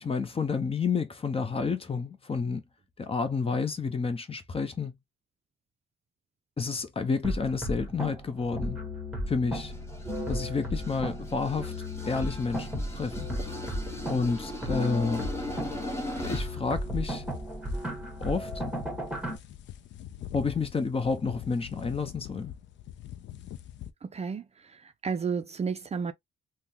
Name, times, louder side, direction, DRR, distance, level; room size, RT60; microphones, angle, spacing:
voice 1, 0.0-2.6 3.0-5.0 6.6-8.8 9.3-9.7 10.3-11.7 12.1-13.3 14.1-15.3 16.2-17.2 18.2-18.6 20.3-22.5, left 4 dB, 30° left, 0.8 m, -30 dB
sound 1, 7.2-19.4, equal, 5° right, 1.5 m, -35 dB
sound 2, 9.6-16.6, left 1 dB, 15° left, 1.2 m, -40 dB
sound 3, 16.0-23.9, left 11 dB, 65° left, 0.5 m, -44 dB
voice 2, 24.0-24.4 25.0-26.1, right 5 dB, 30° right, 0.5 m, -31 dB
3.6 x 2.2 x 2.9 m
cardioid pair, 90°, 20 cm